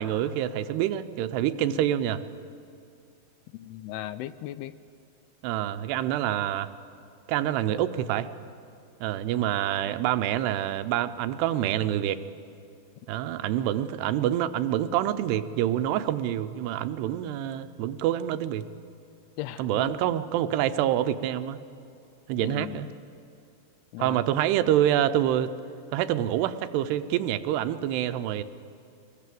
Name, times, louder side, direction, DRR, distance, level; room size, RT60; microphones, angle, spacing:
voice 1, 0.0-2.2 5.4-6.7 7.3-8.3 9.0-12.2 13.1-18.7 19.6-21.6 22.3-22.9 24.0-25.5 25.9-28.4, right 11 dB, 85° right, 11 dB, 2.9 m, -26 dB
voice 2, 3.5-4.7 19.4-19.9 22.4-22.9 23.9-24.2, left 14 dB, 80° left, 14 dB, 2.5 m, -37 dB
23.0 x 18.5 x 7.6 m, 2.5 s
omnidirectional pair, 4.7 m